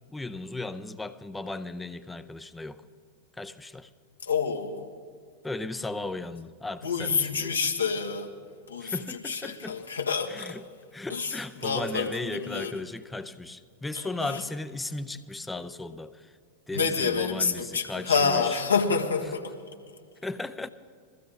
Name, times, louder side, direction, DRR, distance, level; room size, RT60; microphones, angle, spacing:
voice 1, 0.1-2.8 3.4-3.9 5.4-7.6 8.8-9.8 10.3-10.6 10.9-16.3 16.7-18.4 20.2-20.7, left 2 dB, 10° left, 0.6 m, -36 dB
voice 2, 4.2-4.9 6.8-8.3 8.7-10.6 11.1-12.8 13.9-14.4 16.7-19.5, left 5 dB, 75° left, 1.4 m, -28 dB
21.5 x 15.0 x 3.7 m
figure-of-eight pair, 90°, 0 cm